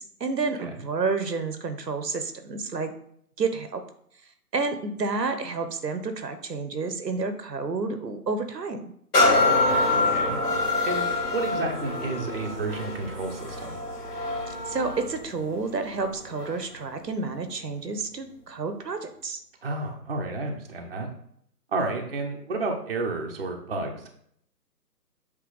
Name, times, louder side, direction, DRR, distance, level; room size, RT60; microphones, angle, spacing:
voice 1, 0.0-2.9 3.4-3.8 4.5-8.9 14.7-19.4, right 4 dB, 80° right, 8 dB, 1.0 m, -30 dB
sound 1, 9.1-16.7 17.3-17.4, left 2 dB, 70° left, 2.3 m, -26 dB
voice 2, 9.4-10.4 10.8-13.8 19.6-21.1 21.7-24.1, right 3 dB, 35° right, 1 dB, 0.8 m, -31 dB
7.8 x 3.0 x 3.9 m, 0.67 s
figure-of-eight pair, 155°, 49 cm